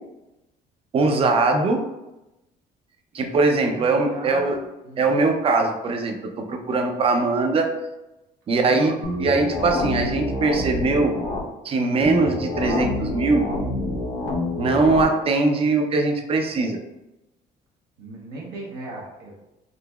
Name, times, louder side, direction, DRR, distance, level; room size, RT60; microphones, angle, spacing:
voice 1, 0.9-1.8 3.1-4.6 5.0-7.7 8.5-11.2 11.6-13.5 14.6-16.8, right 3 dB, 35° right, 4 dB, 0.5 m, -21 dB
voice 2, 3.5-4.5 4.8-5.0 6.8-7.0 8.6-9.0 18.0-19.4, right 2 dB, 80° right, -3 dB, 0.8 m, -38 dB
sound 1, 9.0-11.4 12.0-15.0, left 1 dB, 90° left, 1.0 m, -27 dB
3.8 x 2.8 x 2.3 m, 0.95 s
cardioid pair, 110°, 17 cm